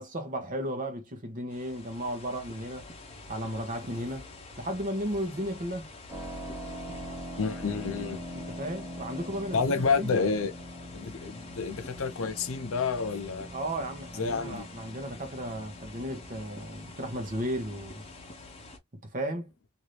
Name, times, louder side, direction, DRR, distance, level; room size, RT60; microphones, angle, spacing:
voice 1, 0.0-2.9 3.3-4.3 4.6-5.9 8.3-10.3 13.5-18.0 19.0-19.5, equal, 40° right, 0.9 m, -34 dB
sound 1, 1.5-18.8, left 3 dB, 25° left, 0.8 m, -47 dB
Keyboard (musical), 6.1-18.6, equal, 10° right, 0.7 m, -44 dB
voice 2, 7.4-8.2 9.5-10.5 10.9-13.5 14.1-14.6, left 5 dB, 70° left, 0.6 m, -29 dB
2.8 x 2.6 x 3.0 m
head